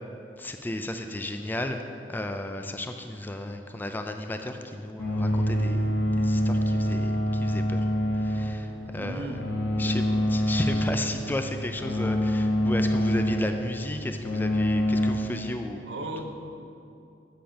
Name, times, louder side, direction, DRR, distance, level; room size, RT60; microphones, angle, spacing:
voice 1, 0.4-1.8 2.1-5.8 6.2-7.9 8.1-9.3 9.8-10.0 10.3-15.8, left 1 dB, 10° left, 6 dB, 0.3 m, -33 dB
sound 1, 5.0-15.1, equal, 75° left, 1.2 m, -26 dB
voice 2, 8.9-9.4 9.7-10.2 15.8-16.3, right 2 dB, 75° right, 4 dB, 0.7 m, -36 dB
7.7 x 5.1 x 5.7 m, 2.6 s
head